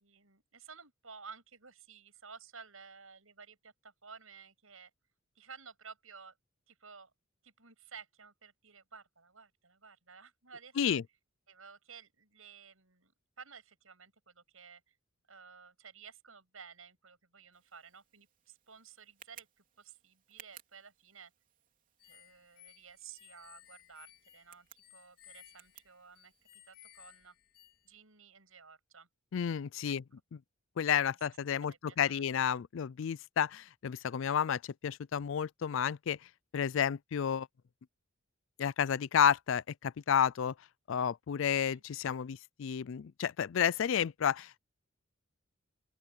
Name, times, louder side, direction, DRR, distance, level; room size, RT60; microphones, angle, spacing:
voice 1, 0.0-4.9 5.4-6.3 6.7-7.1 7.4-11.0 11.5-14.8 15.3-21.3 22.0-27.3 27.8-29.1 29.9-30.0 31.6-32.3 41.5-41.8, right 6 dB, 75° right, 7.1 m, -54 dB
Tick, 17.5-26.7, right 9 dB, 40° right, 3.5 m, -61 dB
sound 1, 22.0-28.0, left 12 dB, 45° left, 2.2 m, -59 dB
voice 2, 29.3-30.0 30.8-36.2 36.5-37.5 38.6-40.5 40.9-44.6, left 8 dB, 65° left, 0.4 m, -31 dB
open air
head